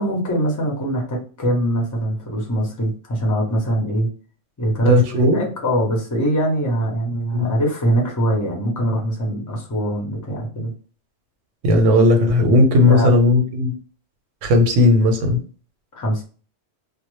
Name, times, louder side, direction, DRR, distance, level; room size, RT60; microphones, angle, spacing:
voice 1, 0.0-4.1 4.6-10.7 12.9-13.1 15.9-16.2, right 1 dB, 20° left, -1 dB, 0.5 m, -22 dB
voice 2, 4.9-5.4 7.3-7.5 11.6-13.7 14.4-15.4, left 2 dB, 85° right, 5 dB, 0.9 m, -15 dB
2.1 x 2.0 x 3.0 m, 0.38 s
omnidirectional pair, 1.3 m